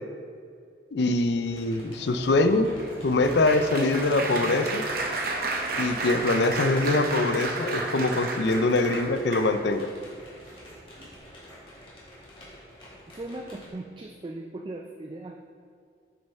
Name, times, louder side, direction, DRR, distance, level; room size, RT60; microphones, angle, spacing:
voice 1, 0.9-2.7 3.0-4.8 5.8-9.9, left 2 dB, 70° left, 9 dB, 0.5 m, -23 dB
sound 1, 1.4-13.7, equal, 30° left, 1.9 m, -49 dB
Applause, 1.5-9.8 10.5-10.7 11.0-11.2, right 2 dB, 50° right, 0.8 m, -32 dB
voice 2, 13.1-15.5, right 2 dB, 25° right, 2 dB, 0.3 m, -39 dB
8.5 x 6.3 x 3.5 m, 2.3 s
head